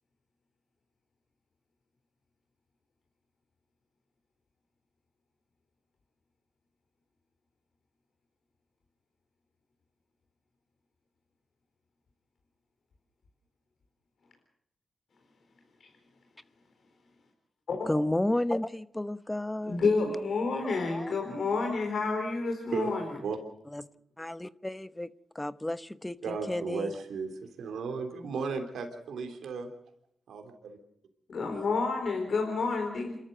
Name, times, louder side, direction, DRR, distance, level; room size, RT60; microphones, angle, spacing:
voice 1, 17.9-19.8 20.9-21.1 23.7-23.8 24.2-27.0, left 1 dB, 15° left, 14 dB, 1.0 m, -32 dB
voice 2, 19.7-23.2 31.3-33.2, left 4 dB, 70° left, 3 dB, 4.2 m, -29 dB
voice 3, 26.2-27.3 27.6-29.7 30.3-30.8, right 5 dB, 80° right, 5 dB, 3.3 m, -35 dB
27.5 x 13.5 x 8.1 m, 0.74 s
supercardioid pair, 50°, 0 cm